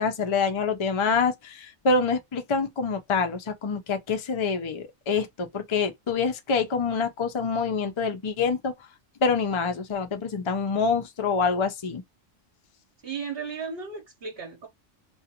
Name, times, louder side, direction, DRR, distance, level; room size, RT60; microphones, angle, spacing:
voice 1, 0.0-8.7 9.2-12.0, left 5 dB, 40° left, 0.4 m, -26 dB
voice 2, 13.0-14.7, right 5 dB, 55° right, 1.0 m, -35 dB
2.5 x 2.4 x 2.8 m
omnidirectional pair, 1.3 m